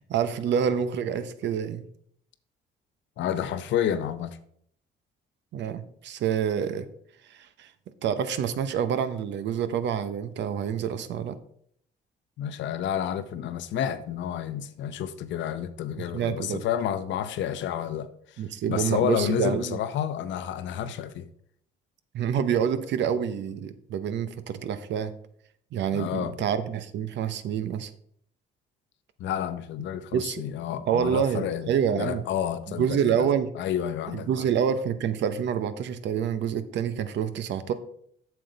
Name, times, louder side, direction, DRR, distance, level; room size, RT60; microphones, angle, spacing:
voice 1, 0.0-1.8 5.5-6.9 7.3-7.7 8.0-11.4 16.0-16.6 18.4-19.8 22.1-25.1 25.7-27.9 30.1-30.4 30.9-32.2 32.8-33.5 34.1-37.7, right 8 dB, 70° right, 0.8 m, -27 dB
voice 2, 3.2-4.4 12.4-21.3 25.9-26.3 29.2-31.7 32.0-33.3 33.5-34.5, left 9 dB, 75° left, 0.7 m, -30 dB
7.6 x 6.9 x 4.0 m
cardioid pair, 110°, 19 cm